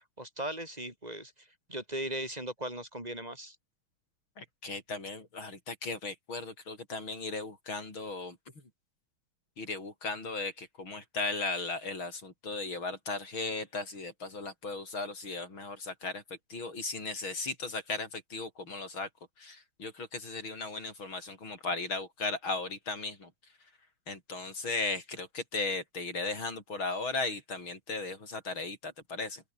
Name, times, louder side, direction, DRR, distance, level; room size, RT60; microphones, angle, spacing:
voice 1, 0.2-3.6, right 1 dB, 20° right, 5.9 m, -38 dB
voice 2, 4.4-8.4 9.6-16.2 16.5-19.1 19.4-23.3 24.1-29.4, left 3 dB, 75° left, 7.4 m, -36 dB
open air
omnidirectional pair, 2.3 m